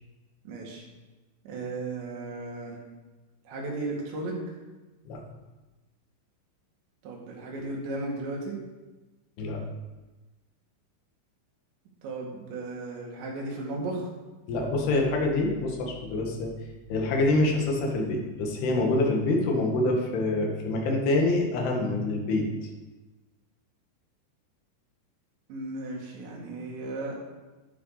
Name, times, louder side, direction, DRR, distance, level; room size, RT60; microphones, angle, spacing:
voice 1, 0.4-0.9 1.5-2.8 3.5-4.4 7.0-8.6 12.0-14.1 25.5-27.2, right 2 dB, 65° right, -2 dB, 4.2 m, -35 dB
voice 2, 14.5-16.5 16.9-22.4, left 2 dB, 60° left, 0 dB, 3.5 m, -26 dB
11.0 x 10.5 x 4.1 m, 1.2 s
omnidirectional pair, 5.8 m